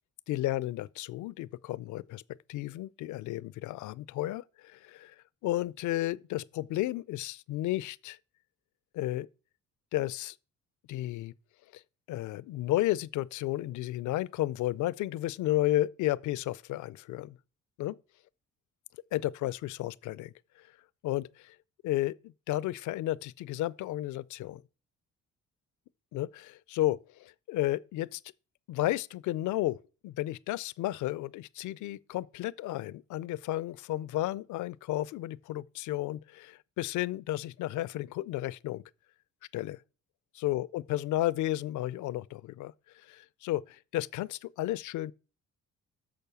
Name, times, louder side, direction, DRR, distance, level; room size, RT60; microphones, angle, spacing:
voice 1, 0.3-2.2 2.5-5.1 5.4-8.2 8.9-9.3 9.9-10.4 10.9-11.3 11.7-11.8 12.1-17.4 17.8-18.0 19.1-20.3 21.0-21.5 21.8-24.6 26.1-28.2 28.7-38.8 39.5-39.8 40.3-45.1, left 15 dB, 75° left, 0.4 m, -33 dB
6.6 x 5.8 x 6.8 m
cardioid pair, 90°, 30 cm